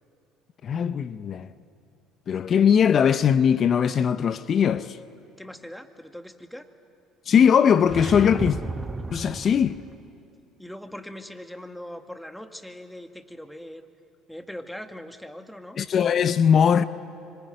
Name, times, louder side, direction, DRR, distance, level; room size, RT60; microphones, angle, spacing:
voice 1, 0.6-1.5 2.3-5.0 7.3-8.6 9.1-9.8 15.8-16.9, left 7 dB, 45° left, 0.8 m, -20 dB
voice 2, 5.4-6.7 10.6-13.9 14.3-15.8, left 1 dB, 5° left, 2.1 m, -40 dB
sound 1, 7.8-10.0, right 2 dB, 20° right, 1.0 m, -33 dB
25.5 x 24.5 x 9.3 m
hypercardioid pair, 70°, 0 cm